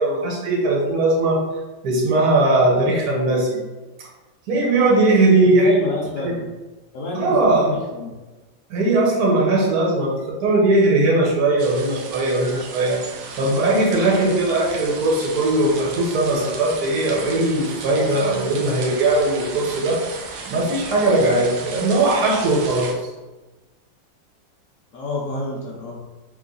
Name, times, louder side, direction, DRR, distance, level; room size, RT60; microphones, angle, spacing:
voice 1, 0.0-1.4 1.8-3.5 4.5-5.7 6.2-6.4 7.1-7.7 8.7-20.0 20.5-22.9, right 2 dB, 55° right, -3 dB, 1.4 m, -19 dB
voice 2, 5.4-6.4 6.9-8.1 24.9-26.0, left 2 dB, 60° left, -5 dB, 0.8 m, -28 dB
sound 1, 11.6-22.9, right 4 dB, 75° right, 0.7 m, -35 dB
3.2 x 3.1 x 3.9 m, 1.1 s
omnidirectional pair, 2.1 m